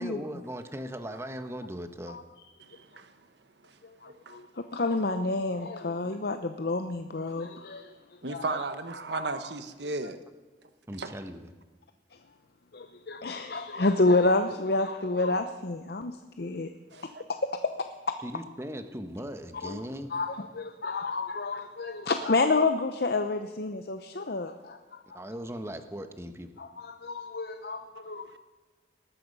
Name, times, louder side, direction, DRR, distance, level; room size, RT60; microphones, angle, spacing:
voice 1, 0.0-2.2 10.9-11.5 18.2-20.1 25.1-26.5, equal, 15° right, 8 dB, 1.0 m, -38 dB
voice 2, 2.6-3.2 3.6-3.8 4.2-4.4 8.2-10.2 11.0-11.1 16.9-17.2 27.9-28.4, right 3 dB, 70° right, 10 dB, 1.2 m, -35 dB
voice 3, 3.8-7.9 8.3-8.5 9.1-9.2 12.7-16.7 17.3-18.2 19.6-19.8 20.1-25.2 26.6-28.4, left 3 dB, 60° left, 8 dB, 0.7 m, -29 dB
19.5 x 13.0 x 5.4 m, 1.3 s
head